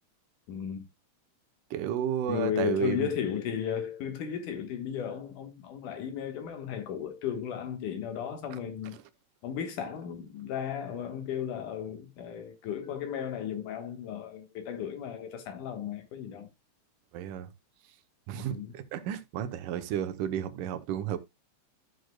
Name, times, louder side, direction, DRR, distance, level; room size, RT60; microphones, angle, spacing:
voice 1, 0.5-0.9 2.3-9.0 9.4-16.5 18.3-18.7, left 8 dB, 75° left, 2.9 m, -35 dB
voice 2, 1.7-3.1 8.9-9.0 17.1-17.5 18.3-21.2, right 10 dB, 85° right, 2.4 m, -32 dB
13.0 x 6.5 x 2.2 m
omnidirectional pair, 3.7 m